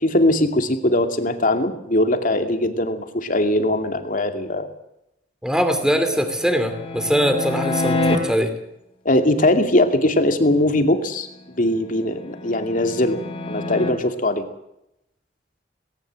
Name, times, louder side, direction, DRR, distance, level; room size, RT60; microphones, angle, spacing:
voice 1, 0.0-4.7 9.0-11.3 11.6-13.2 13.5-14.5, left 1 dB, 50° left, 6 dB, 2.5 m, -20 dB
voice 2, 5.4-8.5, equal, 5° right, 8 dB, 3.0 m, -21 dB
sound 1, 5.9-8.2 11.6-13.9, left 3 dB, 30° left, 4.3 m, -27 dB
19.0 x 18.5 x 7.6 m, 0.84 s
head